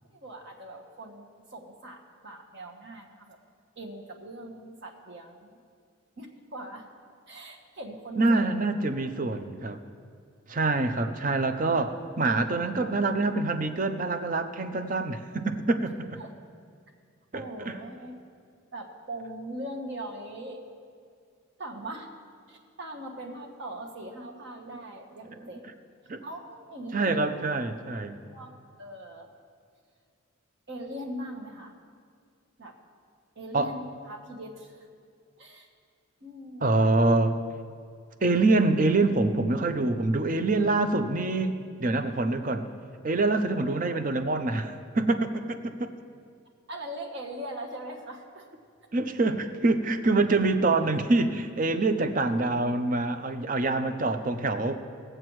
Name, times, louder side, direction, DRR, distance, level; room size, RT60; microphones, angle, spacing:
voice 1, 0.1-3.4 3.8-5.6 6.2-6.9 7.3-8.5 9.0-9.1 16.2-16.3 17.3-18.1 18.7-20.6 21.6-22.1 22.5-25.7 26.2-27.2 27.8-28.0 28.3-28.5 28.8-29.3 30.7-31.7 32.6-32.7 33.3-34.9 35.4-35.7 36.2-36.9 46.7-48.5, right 1 dB, 55° right, 2 dB, 1.3 m, -41 dB
voice 2, 8.2-9.8 10.5-16.2 17.3-17.7 26.1-26.2 26.9-28.2 33.5-33.7 36.6-37.3 38.2-42.7 43.0-45.7 48.9-54.8, right 2 dB, 40° right, 8 dB, 0.6 m, -25 dB
20.0 x 7.7 x 3.1 m, 2.2 s
head